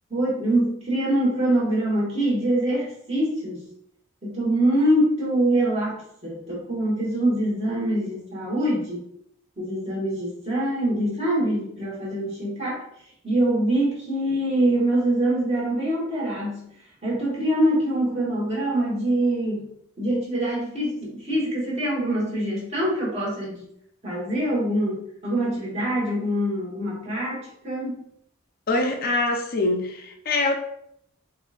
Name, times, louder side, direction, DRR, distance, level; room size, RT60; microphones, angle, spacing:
voice 1, 0.1-3.7 4.2-9.0 9.6-12.8 13.2-16.7 17.0-19.6 20.0-23.7 24.0-28.0, right 1 dB, 30° right, -6 dB, 1.5 m, -24 dB
voice 2, 28.7-30.6, left 2 dB, 45° left, 3 dB, 0.4 m, -24 dB
5.0 x 2.4 x 2.4 m, 0.73 s
head